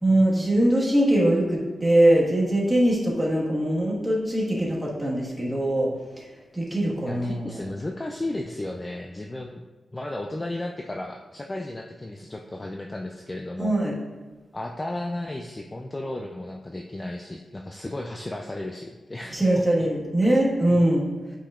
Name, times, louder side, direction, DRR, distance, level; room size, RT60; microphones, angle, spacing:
voice 1, 0.0-5.9 6.2-6.3 6.5-7.5 13.6-13.9 19.3-21.0, right 1 dB, 5° right, -6 dB, 1.5 m, -22 dB
voice 2, 7.1-9.6 9.9-13.7 14.5-19.6 20.7-20.9, left 1 dB, 20° left, 2 dB, 0.3 m, -34 dB
8.6 x 5.0 x 2.4 m, 1.3 s
wide cardioid pair, 130°, 0 cm